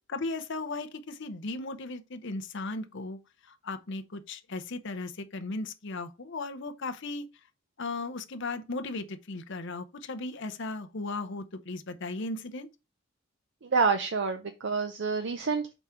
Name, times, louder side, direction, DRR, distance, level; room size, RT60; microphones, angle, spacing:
voice 1, 0.1-3.2 3.5-7.2 7.8-12.7, left 3 dB, 55° left, 0.7 m, -36 dB
voice 2, 13.6-15.7, right 4 dB, 55° right, 0.5 m, -28 dB
4.9 x 3.7 x 5.6 m
head